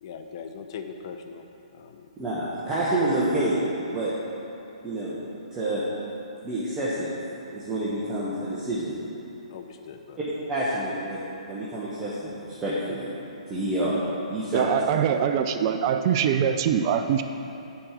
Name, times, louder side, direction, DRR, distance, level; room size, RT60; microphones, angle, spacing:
voice 1, 0.0-1.4 1.7-2.1 2.7-2.8 9.5-10.2 14.5-14.8, left 6 dB, 45° left, 5 dB, 0.7 m, -40 dB
voice 2, 2.2-3.6 3.9-4.1 4.8-5.2 5.5-5.8 6.4-7.1 7.5-9.0 10.5-11.2 11.5-13.1 13.5-14.0 14.3-14.7, right 1 dB, 15° right, -10 dB, 1.2 m, -28 dB
voice 3, 14.5-17.2, right 8 dB, 35° right, 8 dB, 0.4 m, -23 dB
10.0 x 4.5 x 5.1 m, 2.9 s
hypercardioid pair, 135°, 4 cm